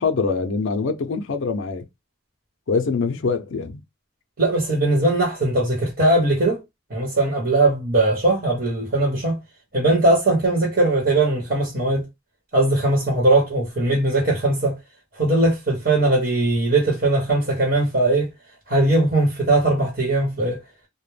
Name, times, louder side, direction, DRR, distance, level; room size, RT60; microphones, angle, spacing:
voice 1, 0.0-1.9 2.7-3.8, left 4 dB, 75° left, 0.5 m, -24 dB
voice 2, 4.4-6.6 6.9-9.4 9.7-12.1 12.5-14.8 15.2-18.3 18.7-20.6, right 2 dB, 50° right, 1.0 m, -20 dB
2.2 x 2.1 x 3.1 m
head